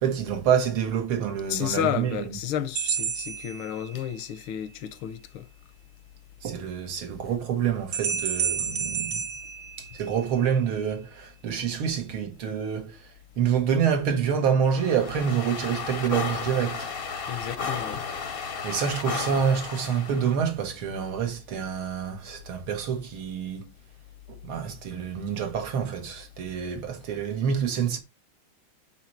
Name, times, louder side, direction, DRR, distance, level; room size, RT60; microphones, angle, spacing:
voice 1, 0.0-2.4 6.4-9.2 9.9-13.1 13.4-16.9 18.6-23.7 24.3-28.0, right 7 dB, 85° right, 2.2 m, -27 dB
voice 2, 1.5-5.5 17.3-18.0, left 10 dB, 85° left, 1.5 m, -31 dB
sound 1, 2.8-4.3 7.9-10.4, right 7 dB, 55° right, 1.0 m, -30 dB
sound 2, 14.7-20.4, left 5 dB, 60° left, 0.6 m, -33 dB
5.7 x 4.4 x 4.5 m
omnidirectional pair, 2.3 m